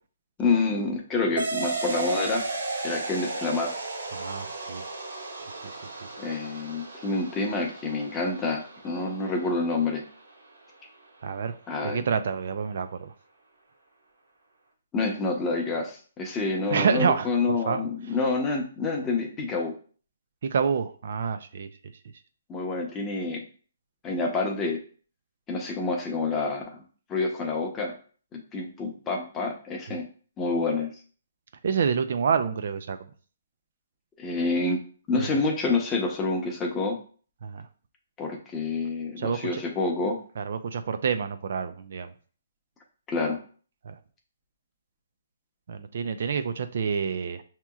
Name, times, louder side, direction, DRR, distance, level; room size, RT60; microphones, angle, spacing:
voice 1, 0.4-2.4 2.8-3.7 6.2-10.0 11.7-12.0 14.9-19.7 22.5-23.4 24.0-24.8 25.5-26.8 27.1-27.9 28.3-30.1 30.4-30.9 34.2-34.8 35.1-37.0 38.2-40.2 43.1-43.4, left 3 dB, 15° left, 1 dB, 0.7 m, -28 dB
sound 1, 1.4-10.4, right 3 dB, 90° right, 1.4 m, -35 dB
voice 2, 4.1-4.9 5.5-5.8 11.2-11.6 11.8-13.1 16.7-17.9 20.4-21.7 29.9-30.0 31.6-33.0 35.1-35.4 37.4-37.7 39.2-39.6 40.4-42.1 43.8-44.0 45.7-47.4, right 6 dB, 60° right, 10 dB, 0.4 m, -28 dB
6.0 x 2.8 x 2.3 m, 0.42 s
hypercardioid pair, 160°, 0 cm